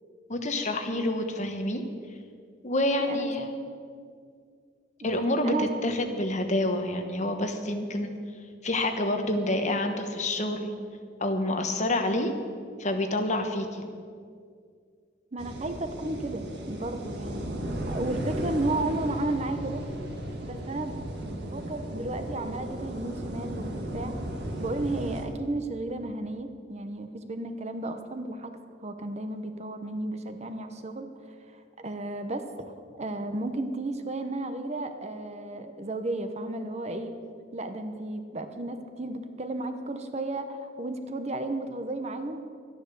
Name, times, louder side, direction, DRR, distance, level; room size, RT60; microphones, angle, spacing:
voice 1, 0.3-1.8 2.6-3.6 5.0-8.1 8.6-10.7 11.2-12.3 12.8-13.8, left 1 dB, 40° left, 6 dB, 1.2 m, -28 dB
voice 2, 3.0-3.4 5.0-5.1 5.4-5.7 15.3-17.5 17.9-19.8 20.4-24.1 24.6-28.5 28.8-31.1 31.5-37.2 37.5-42.4, right 2 dB, 35° right, 8 dB, 0.9 m, -33 dB
sound 1, 15.4-25.2, right 1 dB, 60° right, 1.8 m, -35 dB
12.5 x 10.5 x 6.9 m, 2.1 s
head